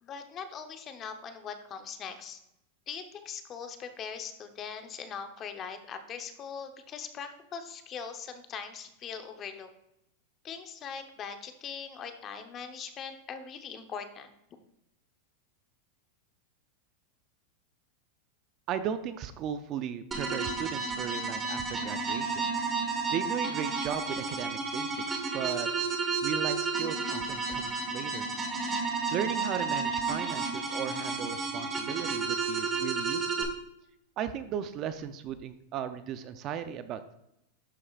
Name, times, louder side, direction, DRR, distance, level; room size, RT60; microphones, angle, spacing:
voice 1, 0.0-2.4 2.9-9.7 10.4-14.3, left 6 dB, 30° left, 7 dB, 0.8 m, -41 dB
voice 2, 18.7-22.5 23.1-25.7 26.2-28.3 29.1-33.5 34.2-37.1, right 9 dB, 35° right, 11 dB, 0.5 m, -36 dB
sound 1, 20.1-33.4, right 4 dB, 20° right, 1.3 m, -32 dB
11.5 x 4.8 x 2.4 m, 0.82 s
supercardioid pair, 140°, 0 cm